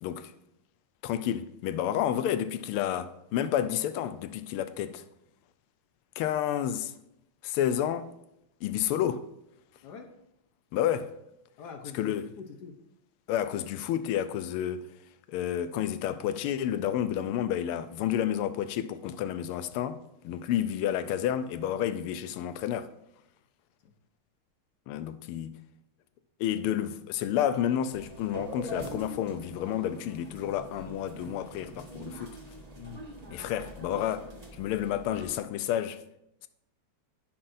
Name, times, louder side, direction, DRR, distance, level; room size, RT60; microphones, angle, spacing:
voice 1, 0.0-0.3 1.0-5.0 6.2-6.9 7.4-8.1 8.6-9.2 10.7-11.1 11.9-12.2 13.3-14.9 15.3-22.9 24.9-25.6 26.4-32.4 33.3-36.0, left 10 dB, 85° left, 1.5 m, -30 dB
voice 2, 9.8-10.1 11.6-12.8 23.8-23.9 32.7-33.1, left 6 dB, 65° left, 1.1 m, -44 dB
sound 1, 27.9-35.3, right 1 dB, 25° right, 1.1 m, -44 dB
15.5 x 5.9 x 2.6 m
omnidirectional pair, 2.4 m